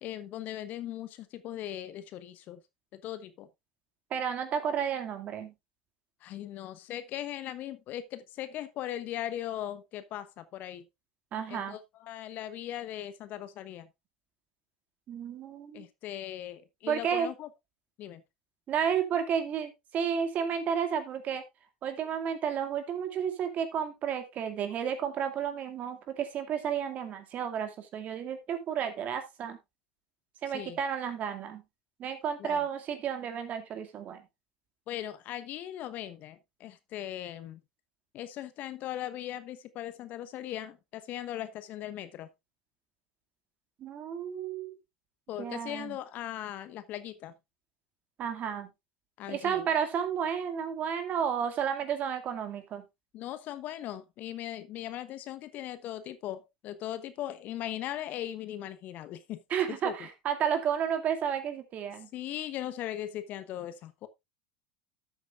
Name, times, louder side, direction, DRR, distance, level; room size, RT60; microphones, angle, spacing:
voice 1, 0.0-2.6 2.9-3.5 6.2-10.8 11.5-13.9 15.7-17.5 18.0-18.2 30.5-30.8 32.4-32.6 34.9-37.6 38.1-42.3 45.3-47.3 49.2-49.7 53.1-59.4 59.7-59.9 62.1-64.1, left 12 dB, 50° left, 1.1 m, -39 dB
voice 2, 4.1-5.5 11.3-11.8 15.1-15.8 16.9-17.3 18.7-21.4 21.8-29.6 30.4-31.6 32.0-34.2 43.8-44.8 45.4-46.0 48.2-48.7 49.3-52.8 59.5-62.1, right 8 dB, 40° right, 2.2 m, -32 dB
13.0 x 8.3 x 2.5 m
hypercardioid pair, 75°, 4 cm